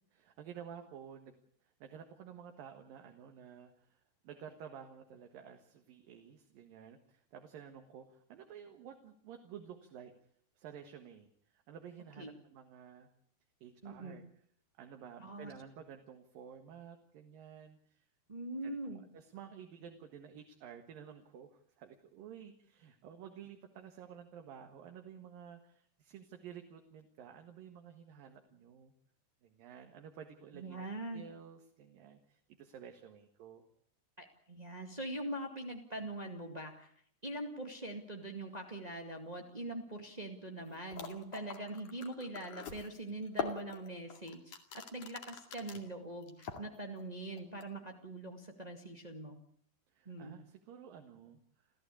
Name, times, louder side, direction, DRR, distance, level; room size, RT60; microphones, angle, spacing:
voice 1, 0.1-1.3 1.6-4.0 4.2-10.1 10.6-13.1 13.6-14.2 14.8-18.0 18.6-28.9 29.4-30.9 31.1-33.6 49.9-51.4, right 8 dB, 60° right, 5 dB, 3.1 m, -52 dB
voice 2, 13.8-14.2 15.2-15.5 18.3-19.0 30.5-31.2 34.2-36.9 37.2-44.4 44.7-49.4 50.0-50.4, right 1 dB, 30° right, 3 dB, 0.7 m, -43 dB
sound 1, 40.6-40.7 40.9-45.8 46.2-47.0 47.4-47.7, left 6 dB, 55° left, 3.4 m, -43 dB
29.5 x 14.5 x 8.6 m, 0.65 s
omnidirectional pair, 4.9 m